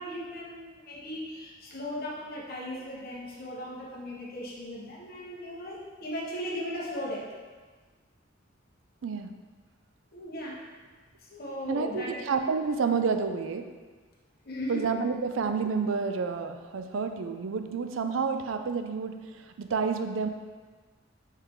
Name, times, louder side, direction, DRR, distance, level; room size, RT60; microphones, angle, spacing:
voice 1, 0.0-7.2 10.1-10.6 11.2-12.2 14.4-14.8, equal, 50° left, -4 dB, 1.3 m, -37 dB
voice 2, 9.0-9.3 11.7-13.6 14.7-19.1 19.6-20.3, right 5 dB, 80° right, 8 dB, 0.4 m, -29 dB
5.6 x 4.5 x 3.7 m, 1.4 s
head